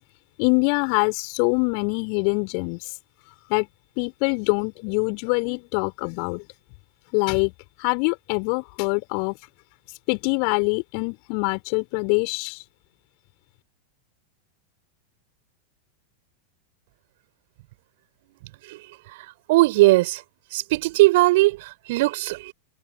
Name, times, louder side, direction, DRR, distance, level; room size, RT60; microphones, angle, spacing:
voice 1, 0.4-2.8 3.5-3.7 4.0-6.4 7.1-7.5 7.8-9.4 10.1-12.6, left 40 dB or more, 45° left, 4.9 m, -24 dB
voice 2, 18.4-20.2 20.5-22.5, right 20 dB, 50° right, 5.0 m, -20 dB
figure-of-eight pair, 90°, 0 cm